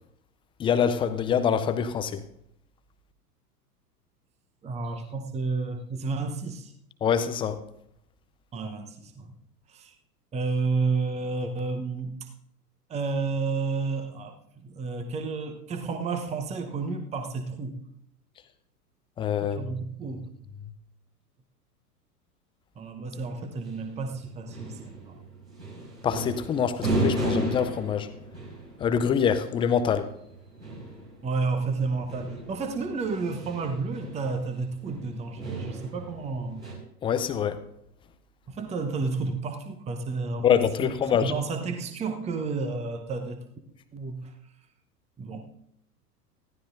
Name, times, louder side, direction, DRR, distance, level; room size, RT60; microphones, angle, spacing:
voice 1, 0.6-2.2 7.0-7.6 19.2-19.7 26.0-28.1 28.8-30.1 37.0-37.6 40.4-41.3, left 7 dB, 10° left, 10 dB, 0.5 m, -25 dB
voice 2, 4.6-6.7 8.5-9.3 9.7-9.9 10.3-12.3 12.9-17.8 19.4-20.3 22.8-25.2 31.2-36.7 38.5-40.5 40.8-40.9 41.2-43.5 43.9-44.3 45.2-45.5, right 4 dB, 15° right, 7 dB, 1.0 m, -31 dB
sound 1, 23.1-36.7, right 1 dB, 85° right, 5.3 m, -35 dB
20.0 x 14.5 x 2.6 m, 0.74 s
figure-of-eight pair, 100°, 48 cm